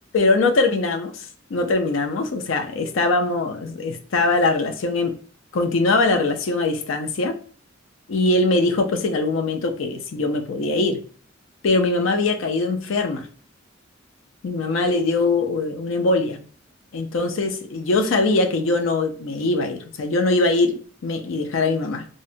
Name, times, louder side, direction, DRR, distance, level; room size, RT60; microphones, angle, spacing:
voice 1, 0.1-5.1 5.5-7.4 8.1-11.0 11.6-13.3 14.4-16.4 16.9-22.1, left 3 dB, 80° left, 0.4 m, -22 dB
2.7 x 2.1 x 2.6 m
head